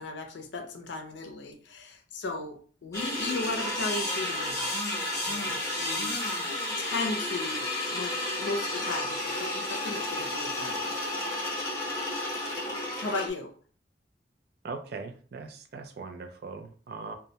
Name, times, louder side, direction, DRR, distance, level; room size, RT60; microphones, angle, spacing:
voice 1, 0.0-5.0 5.2-6.2 6.8-11.0 13.0-13.5, left 3 dB, 90° left, 4 dB, 0.5 m, -36 dB
sound 1, 2.9-13.3, left 1 dB, 20° left, 0.7 m, -32 dB
voice 2, 14.6-17.1, right 4 dB, 60° right, 6 dB, 0.4 m, -40 dB
2.2 x 2.1 x 2.7 m, 0.42 s
head